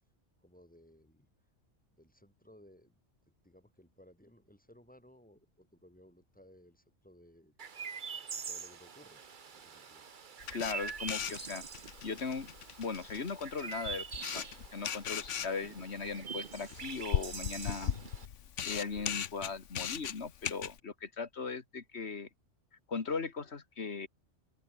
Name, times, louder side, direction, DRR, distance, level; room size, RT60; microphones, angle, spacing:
voice 1, 0.4-1.3 2.0-3.0 3.4-7.7 8.3-10.1, left 1 dB, 5° left, 6.5 m, -60 dB
Chirp tweet, 7.6-18.3, right 6 dB, 45° right, 1.1 m, -45 dB
Camera, 10.4-20.8, left 8 dB, 75° left, 1.3 m, -39 dB
voice 2, 10.5-11.6 12.0-12.5 12.8-14.1 14.3-14.4 14.7-17.9 18.6-22.3 22.9-24.1, left 5 dB, 60° left, 2.1 m, -38 dB
open air
omnidirectional pair, 1.3 m